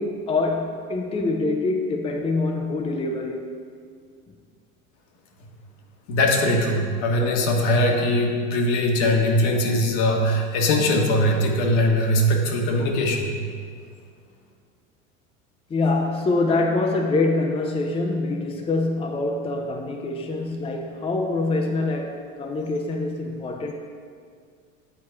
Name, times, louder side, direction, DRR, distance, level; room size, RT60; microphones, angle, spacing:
voice 1, 0.0-3.5 15.7-23.7, left 2 dB, 15° left, 2 dB, 0.5 m, -25 dB
voice 2, 6.1-13.3, left 1 dB, 55° left, 1 dB, 1.3 m, -21 dB
8.8 x 4.2 x 4.8 m, 2.2 s
hypercardioid pair, 80°, 41 cm